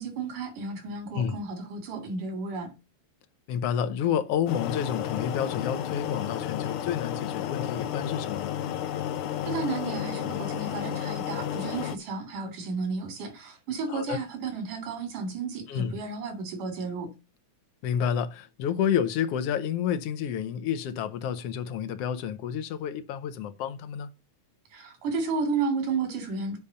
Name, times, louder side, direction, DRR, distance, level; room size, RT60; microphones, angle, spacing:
voice 1, 0.0-2.7 9.5-17.1 24.7-26.6, right 4 dB, 80° right, 3.9 m, -32 dB
voice 2, 3.5-8.6 13.9-14.2 15.7-16.0 17.8-24.1, left 8 dB, 65° left, 1.6 m, -30 dB
sound 1, 4.5-12.0, left 10 dB, 85° left, 1.2 m, -32 dB
8.5 x 5.1 x 6.8 m
omnidirectional pair, 3.6 m